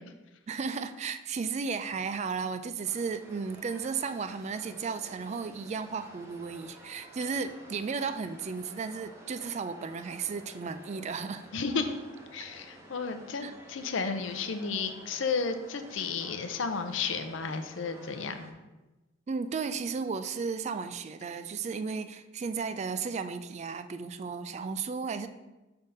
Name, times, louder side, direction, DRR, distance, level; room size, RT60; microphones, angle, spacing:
voice 1, 0.5-11.5 13.4-13.5 19.3-25.3, right 5 dB, 35° right, 11 dB, 0.3 m, -34 dB
sound 1, 2.8-18.5, right 1 dB, 15° right, 0.8 m, -51 dB
voice 2, 11.5-12.0 12.3-18.5, left 5 dB, 85° left, 7 dB, 0.6 m, -33 dB
5.6 x 3.5 x 5.3 m, 1.1 s
head